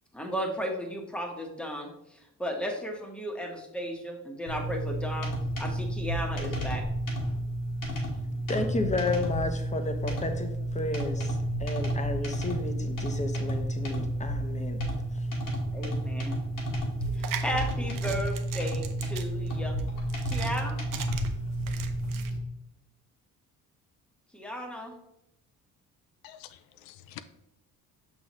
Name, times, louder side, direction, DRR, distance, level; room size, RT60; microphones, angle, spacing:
voice 1, 0.1-5.3 5.6-6.8 15.7-16.4 17.2-19.8 20.3-20.8 24.3-24.9, equal, 5° left, 1 dB, 1.3 m, -35 dB
sound 1, 4.5-22.4, right 1 dB, 65° left, 1.9 m, -31 dB
voice 2, 8.5-14.8, left 3 dB, 20° left, 6 dB, 1.0 m, -32 dB
sound 2, 17.0-22.3, right 9 dB, 65° right, 0.8 m, -40 dB
voice 3, 26.2-27.2, left 13 dB, 85° left, 11 dB, 0.5 m, -47 dB
6.1 x 5.9 x 3.1 m, 0.84 s
cardioid pair, 90°, 35 cm